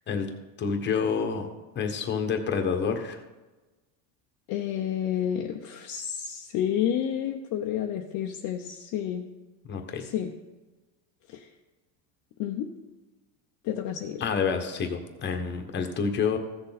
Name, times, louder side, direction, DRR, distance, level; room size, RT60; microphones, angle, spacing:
voice 1, 0.6-1.5 1.7-3.2 9.6-10.1 14.2-16.4, left 6 dB, 25° left, 4 dB, 1.2 m, -28 dB
voice 2, 4.5-9.3 10.0-10.3 11.3-11.5 12.4-12.7 13.6-14.2, left 10 dB, 45° left, 2 dB, 0.8 m, -30 dB
15.0 x 6.6 x 4.1 m, 1.2 s
cardioid pair, 145°, 41 cm